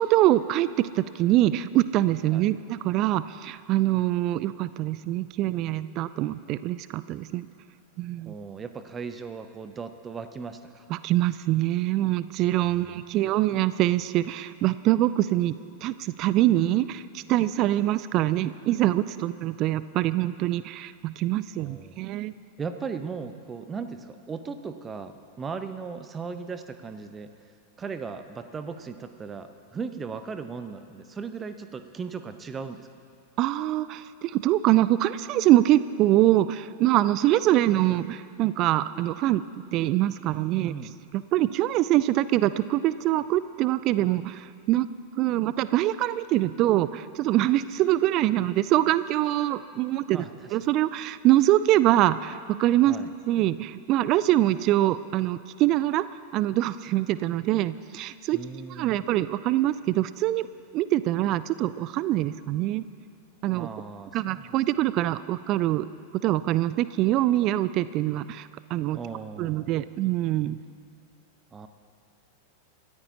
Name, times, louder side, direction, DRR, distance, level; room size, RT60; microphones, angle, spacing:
voice 1, 0.0-7.5 8.0-8.3 10.9-15.5 15.8-22.3 33.4-39.4 39.7-40.7 41.1-44.9 45.2-50.2 50.5-53.0 53.3-56.1 56.3-58.4 58.7-60.5 60.7-62.8 63.4-63.7 64.1-65.9 66.2-69.0 69.4-70.6, right 14 dB, 40° right, 16 dB, 0.4 m, -24 dB
voice 2, 8.2-10.9 12.6-13.0 21.6-22.0 22.6-27.3 27.8-32.9 40.6-40.9 50.1-50.6 52.8-53.1 58.3-59.1 63.5-64.6 68.9-69.8 71.5-71.7, right 5 dB, 20° right, 9 dB, 0.8 m, -37 dB
26.5 x 14.0 x 2.8 m, 2.4 s
figure-of-eight pair, 90°, 0 cm